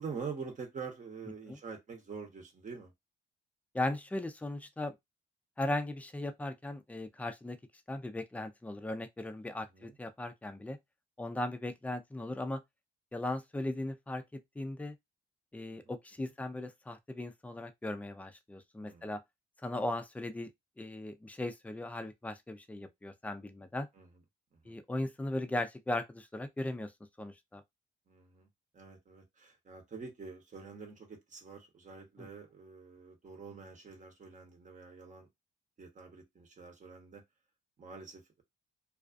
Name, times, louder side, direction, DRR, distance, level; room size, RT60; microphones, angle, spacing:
voice 1, 0.0-2.9 9.7-9.9 15.7-15.8 18.8-19.1 24.0-24.1 24.5-24.8 28.1-28.5 28.7-35.3 35.8-37.2 37.8-38.4, right 5 dB, 40° right, 0.9 m, -46 dB
voice 2, 3.7-4.9 5.6-7.6 7.9-10.8 11.2-12.6 13.1-15.0 15.5-19.2 19.6-20.5 20.8-23.9 24.7-26.9 27.2-27.6 32.2-32.3, left 1 dB, 5° left, 0.4 m, -37 dB
2.3 x 2.3 x 2.4 m
cardioid pair, 90°, 20 cm